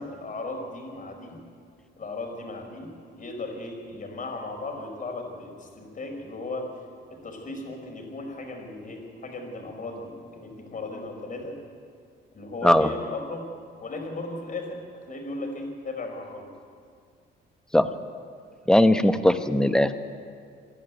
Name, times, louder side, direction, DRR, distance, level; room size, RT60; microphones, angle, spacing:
voice 1, 0.0-1.4 2.0-2.9 3.2-6.7 7.1-11.6 12.3-13.4 13.8-16.5, left 2 dB, 40° left, 2 dB, 5.1 m, -36 dB
voice 2, 18.7-19.9, left 1 dB, 5° left, 8 dB, 1.2 m, -19 dB
26.5 x 11.0 x 9.3 m, 2.2 s
cardioid pair, 90°, 20 cm